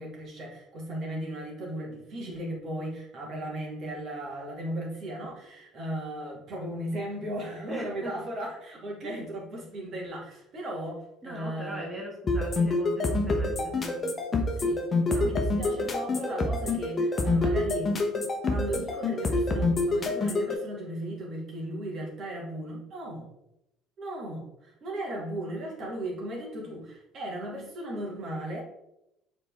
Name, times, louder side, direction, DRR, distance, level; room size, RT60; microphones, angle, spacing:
voice 1, 0.0-11.9 14.5-14.8 15.1-17.9 18.5-23.3 24.0-28.6, right 1 dB, 50° right, -1 dB, 2.2 m, -36 dB
voice 2, 7.7-8.1 9.0-9.2 11.2-14.0 15.1-15.3, right 1 dB, 5° right, -3 dB, 1.2 m, -40 dB
sound 1, 12.3-20.5, left 2 dB, 30° left, 1.0 m, -26 dB
7.0 x 4.3 x 3.6 m, 0.84 s
cardioid pair, 130°, 0 cm